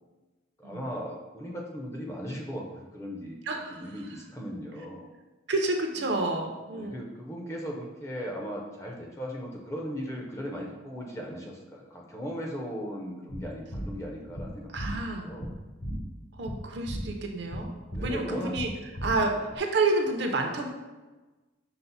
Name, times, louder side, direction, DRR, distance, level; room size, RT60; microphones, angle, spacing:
voice 1, 0.6-3.4 3.7-5.1 6.7-15.5 17.9-18.5 19.3-19.4, equal, 15° left, -1 dB, 0.5 m, -38 dB
voice 2, 3.5-3.8 5.5-6.9 14.7-15.3 16.4-17.7 18.0-18.7 19.0-20.7, right 2 dB, 60° right, 3 dB, 0.5 m, -29 dB
sound 1, 13.3-19.6, equal, 55° left, 0.8 m, -37 dB
5.7 x 2.0 x 3.9 m, 1.2 s
head